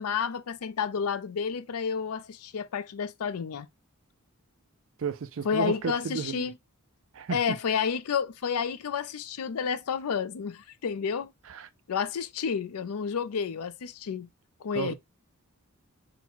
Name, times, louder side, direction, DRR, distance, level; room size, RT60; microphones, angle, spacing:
voice 1, 0.0-3.7 5.4-6.6 7.3-11.3 11.9-14.3 14.6-14.9, left 6 dB, 80° left, 0.4 m, -30 dB
voice 2, 5.0-6.5 7.1-7.6 11.5-11.7 14.7-14.9, right 6 dB, 60° right, 0.5 m, -33 dB
3.8 x 2.2 x 4.3 m
head